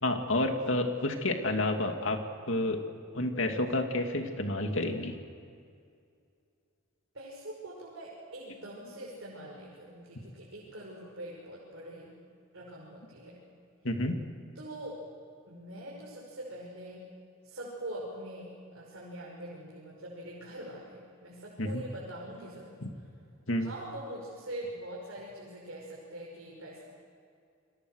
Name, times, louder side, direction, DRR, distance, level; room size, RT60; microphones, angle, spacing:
voice 1, 0.0-2.2 2.5-2.8 3.1-5.1 13.8-14.2 21.6-21.8 22.8-22.9 23.5-23.7, left 1 dB, 65° left, 4 dB, 2.6 m, -29 dB
voice 2, 7.1-12.2 12.5-13.4 14.5-15.0 15.5-17.0 17.4-22.8 23.6-26.8, right 1 dB, 65° right, -5 dB, 6.0 m, -43 dB
30.0 x 23.0 x 6.5 m, 2.4 s
head